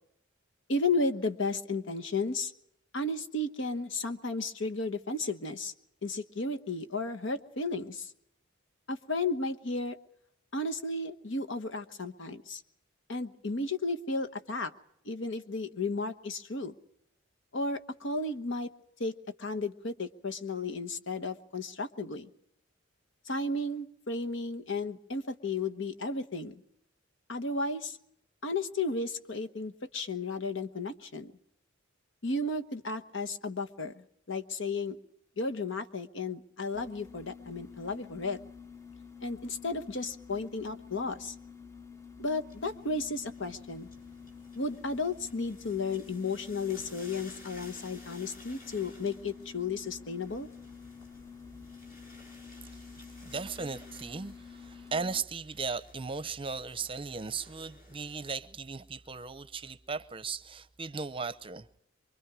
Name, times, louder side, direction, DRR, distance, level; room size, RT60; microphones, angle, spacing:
voice 1, 0.7-2.5 2.9-5.7 6.0-8.1 8.9-10.0 10.5-12.6 13.1-14.7 15.0-16.7 17.5-18.7 19.0-22.3 23.2-26.6 27.3-28.0 28.4-31.3 32.2-35.0 35.4-38.4 39.2-41.3 42.2-43.9 44.5-50.5, left 3 dB, 65° left, 1.2 m, -33 dB
sound 1, 36.7-55.2, left 6 dB, 15° left, 0.8 m, -49 dB
sound 2, 42.4-58.3, left 1 dB, 50° left, 6.6 m, -56 dB
voice 2, 53.2-61.7, right 4 dB, 25° right, 0.7 m, -37 dB
24.5 x 23.5 x 4.9 m
head